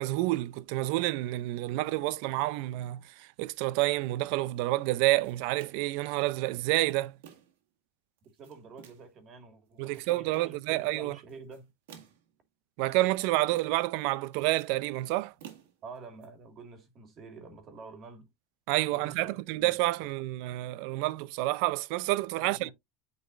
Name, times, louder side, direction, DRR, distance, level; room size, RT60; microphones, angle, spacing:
voice 1, 0.0-7.1 9.8-11.2 12.8-15.3 18.7-22.7, right 18 dB, 65° right, 0.5 m, -29 dB
sound 1, 5.2-6.0 6.6-7.6 8.2-9.2 9.7-10.6 11.3-12.4 12.9-13.9 14.2-16.3, right 9 dB, 90° right, 1.9 m, -54 dB
voice 2, 8.4-11.7 15.8-18.3 18.9-20.1 22.3-22.7, right 4 dB, 35° right, 1.9 m, -48 dB
9.3 x 4.0 x 2.5 m
supercardioid pair, 140°, 0 cm